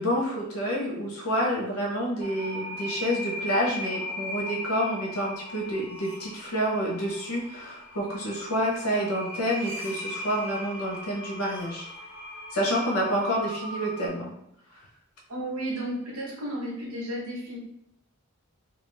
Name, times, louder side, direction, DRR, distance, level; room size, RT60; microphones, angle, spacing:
voice 1, 0.0-11.9 12.5-14.3, equal, 85° left, -2 dB, 0.7 m, -28 dB
sound 1, 2.2-14.1, equal, 10° right, 0.4 m, -38 dB
voice 2, 15.3-17.6, right 1 dB, 85° right, -3 dB, 1.0 m, -33 dB
2.3 x 2.3 x 3.3 m, 0.77 s
head